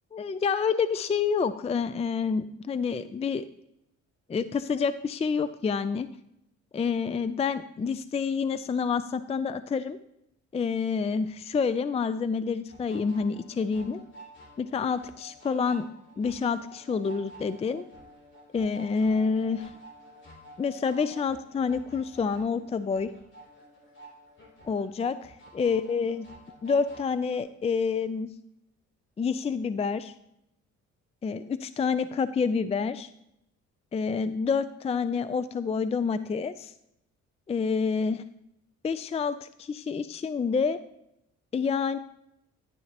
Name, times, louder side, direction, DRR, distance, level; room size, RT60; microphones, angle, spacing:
voice 1, 0.1-3.4 4.3-6.1 6.7-10.0 10.5-14.0 14.6-15.9 16.2-17.8 18.5-19.7 20.6-23.1 24.6-26.3 26.6-28.3 29.2-30.1 31.2-33.1 33.9-36.7 37.5-38.2 38.8-40.8 41.5-42.0, left 5 dB, 20° left, 13 dB, 0.4 m, -28 dB
sound 1, 12.7-27.4, right 1 dB, 40° left, 3.2 m, -50 dB
10.5 x 9.6 x 2.9 m, 0.80 s
cardioid pair, 90°, 30 cm